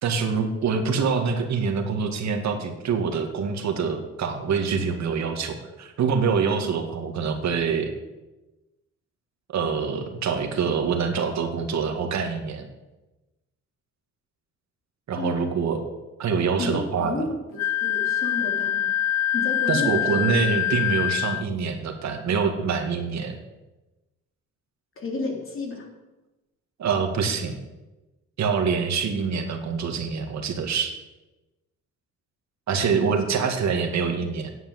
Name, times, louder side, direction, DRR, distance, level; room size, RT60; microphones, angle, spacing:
voice 1, 0.0-7.9 9.5-12.7 15.1-15.8 16.2-17.2 19.7-23.3 26.8-27.6 28.4-31.0 32.7-34.5, right 5 dB, 65° right, 5 dB, 2.0 m, -25 dB
voice 2, 15.2-15.6 16.6-18.9 19.3-20.2 25.0-25.9 32.7-33.2, left 3 dB, 45° left, 1 dB, 3.4 m, -32 dB
Wind instrument woodwind instrument, 17.6-21.4, left 11 dB, 60° left, 0.5 m, -25 dB
9.8 x 8.1 x 8.0 m, 1.1 s
cardioid pair, 90°, 30 cm